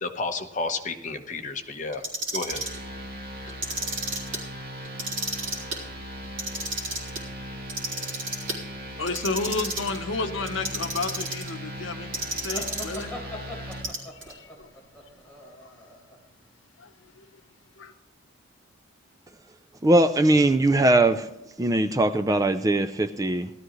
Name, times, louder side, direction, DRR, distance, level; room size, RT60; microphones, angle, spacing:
voice 1, 0.0-2.0 2.3-2.6, left 3 dB, 40° left, 1.1 m, -31 dB
Clock, 1.9-2.8 3.5-4.4 4.8-5.8 6.2-7.2 7.7-8.6 9.1-10.0 10.5-11.5 12.1-13.0 13.7-14.3, right 2 dB, 70° right, 3.2 m, -31 dB
sound 1, 2.5-13.8, equal, 55° right, 2.9 m, -38 dB
voice 2, 8.9-13.8 14.1-14.7 15.6-15.7 16.8-16.9 17.2-17.3 17.8-17.9, left 3 dB, 75° left, 1.0 m, -32 dB
sound 2, 12.5-16.2, equal, 5° left, 3.4 m, -40 dB
voice 3, 19.8-21.3 21.6-23.5, right 2 dB, 20° right, 0.4 m, -20 dB
17.0 x 12.5 x 3.1 m
head